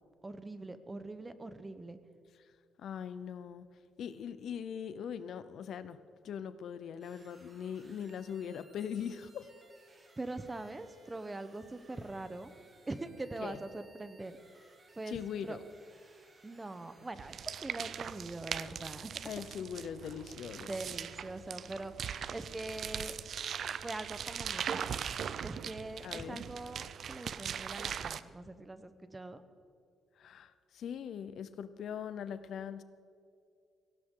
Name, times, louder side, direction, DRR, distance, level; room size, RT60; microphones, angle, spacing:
voice 1, 0.2-2.0 10.2-12.5 12.9-14.6 14.9-15.6 16.4-19.2 20.6-23.1 23.8-24.9 25.4-29.4, right 2 dB, 20° right, 11 dB, 1.0 m, -43 dB
voice 2, 2.8-3.7 4.0-6.0 6.2-9.5 13.4-13.6 15.1-15.6 19.2-20.7 26.0-26.4 30.2-32.8, left 8 dB, 70° left, 13 dB, 0.7 m, -41 dB
sound 1, 7.0-17.1, right 3 dB, 35° right, 2.4 m, -62 dB
sound 2, 17.1-28.2, right 8 dB, 60° right, 0.5 m, -40 dB
17.5 x 17.0 x 3.9 m, 2.3 s
cardioid pair, 90°, 0 cm